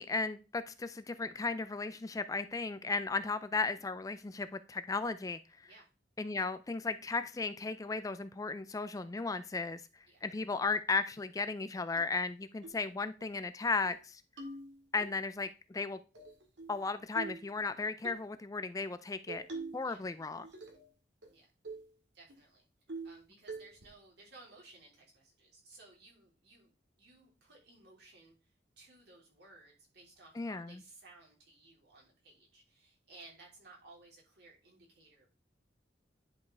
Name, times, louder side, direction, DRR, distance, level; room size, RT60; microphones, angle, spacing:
voice 1, 0.0-5.7 6.2-9.8 10.2-14.2 14.9-16.0 16.7-19.5 19.7-20.5 30.4-30.8, left 4 dB, 20° left, 12 dB, 0.3 m, -35 dB
sound 1, 12.0-12.1 12.6-12.8 13.2-13.3 13.6-14.0 14.4-15.1 16.1-16.8 17.1-17.5 18.0-18.2 19.3-19.9 20.2-20.9 21.2-21.3 21.6-21.9 22.3-22.4 22.9-23.2 23.5-23.9, right 3 dB, 85° right, 2.0 m, -44 dB
voice 2, 22.1-22.7 23.0-35.3, right 3 dB, 65° right, -2 dB, 3.4 m, -58 dB
10.5 x 5.2 x 3.4 m, 0.32 s
head